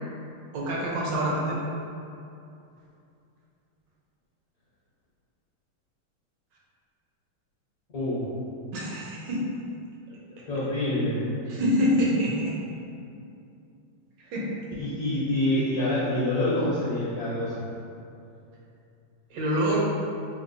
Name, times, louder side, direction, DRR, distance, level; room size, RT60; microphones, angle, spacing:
voice 1, 0.5-1.6 8.7-9.5 11.5-12.5 14.2-14.6 19.3-19.8, equal, 75° right, -4 dB, 1.1 m, -26 dB
voice 2, 7.9-8.3 10.5-11.2 14.8-17.7, left 1 dB, 55° left, -9 dB, 1.1 m, -26 dB
4.3 x 2.4 x 2.5 m, 2.6 s
omnidirectional pair, 2.3 m